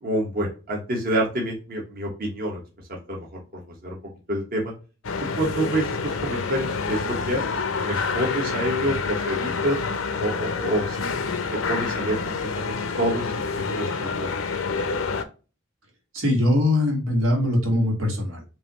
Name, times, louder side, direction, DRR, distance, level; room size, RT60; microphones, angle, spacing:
voice 1, 0.0-2.6 3.1-3.4 3.7-4.0 4.3-4.7 5.4-9.8 10.2-11.1 11.7-14.7, right 1 dB, 50° right, -2 dB, 1.4 m, -28 dB
sound 1, 5.0-15.2, left 4 dB, 80° left, 0.6 m, -28 dB
voice 2, 16.1-18.4, left 1 dB, 85° right, 0 dB, 1.9 m, -22 dB
5.3 x 2.7 x 3.0 m, 0.33 s
head